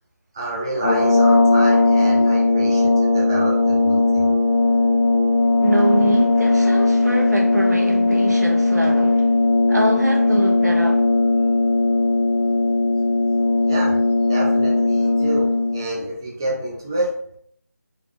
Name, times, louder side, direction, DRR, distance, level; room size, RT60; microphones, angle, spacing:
voice 1, 0.3-4.3 13.7-14.0 14.3-17.2, right 1 dB, 15° right, 0.5 m, -28 dB
sound 1, 0.7-15.9, left 2 dB, 75° left, 0.6 m, -18 dB
voice 2, 5.6-9.3 9.7-11.0, right 1 dB, 90° right, 1.2 m, -24 dB
4.0 x 3.3 x 3.0 m
figure-of-eight pair, 170°, 9 cm